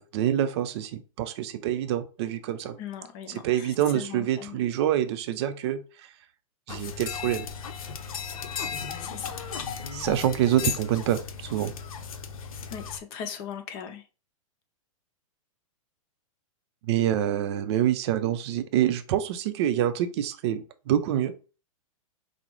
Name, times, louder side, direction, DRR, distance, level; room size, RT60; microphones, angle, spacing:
voice 1, 0.0-2.8 3.4-5.8 6.7-7.5 9.9-11.7 16.9-21.3, right 11 dB, 50° right, 0.5 m, -26 dB
voice 2, 2.8-4.6 9.0-9.4 12.7-14.0, left 8 dB, 40° left, 0.8 m, -39 dB
sound 1, 6.7-13.0, left 6 dB, 75° left, 0.6 m, -35 dB
5.1 x 2.0 x 3.1 m
hypercardioid pair, 130°, 18 cm